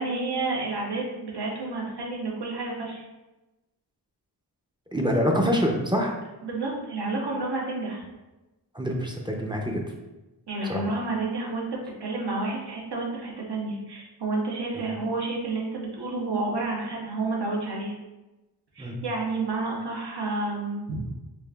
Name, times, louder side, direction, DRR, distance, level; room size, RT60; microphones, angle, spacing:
voice 1, 0.0-3.0 6.4-8.0 10.5-17.9 18.7-21.0, right 3 dB, 70° right, -2 dB, 1.0 m, -30 dB
voice 2, 4.9-6.1 8.7-9.8 10.6-10.8 14.7-14.8 18.8-19.0, equal, 10° right, 0 dB, 0.5 m, -25 dB
4.9 x 2.4 x 2.3 m, 1.0 s
wide cardioid pair, 70°, 41 cm